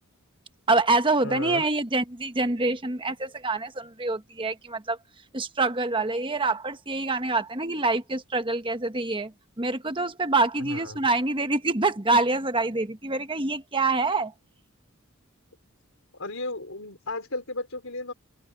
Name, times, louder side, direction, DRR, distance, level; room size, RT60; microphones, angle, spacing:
voice 1, 0.7-5.0 5.3-9.3 9.6-14.3, right 3 dB, 25° right, 1.3 m, -26 dB
voice 2, 1.2-1.7 10.6-11.0 16.1-18.1, left 2 dB, 70° left, 4.7 m, -34 dB
open air
head